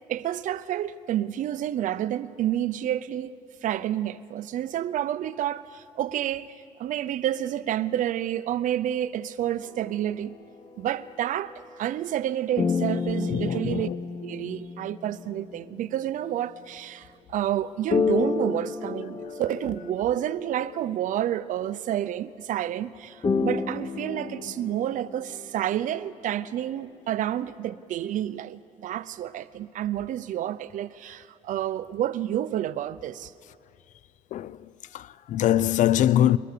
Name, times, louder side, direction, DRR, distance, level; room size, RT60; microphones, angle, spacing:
voice 1, 0.1-3.4 3.6-6.5 6.8-10.3 10.8-13.9 14.2-33.3, right 11 dB, 75° right, 0.7 m, -29 dB
sound 1, 9.6-12.3 12.6-16.1 17.9-21.6 23.2-25.5, left 4 dB, 40° left, 2.0 m, -31 dB
voice 2, 13.3-14.0 34.3-36.4, left 11 dB, 65° left, 0.5 m, -23 dB
23.0 x 21.0 x 6.8 m
cardioid pair, 115°, 14 cm